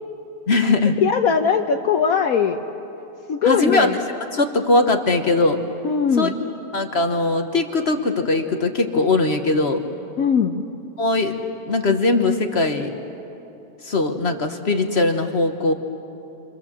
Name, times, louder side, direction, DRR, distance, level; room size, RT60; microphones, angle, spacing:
voice 1, 0.5-1.0 3.4-3.9 4.3-5.6 6.2-6.3 6.7-9.8 11.0-12.9 13.8-15.7, left 3 dB, 40° left, 6 dB, 1.3 m, -20 dB
voice 2, 1.0-2.6 3.3-4.0 5.8-6.4 10.2-10.6, left 6 dB, 60° left, 5 dB, 1.2 m, -20 dB
29.5 x 25.0 x 7.4 m, 2.9 s
omnidirectional pair, 1.8 m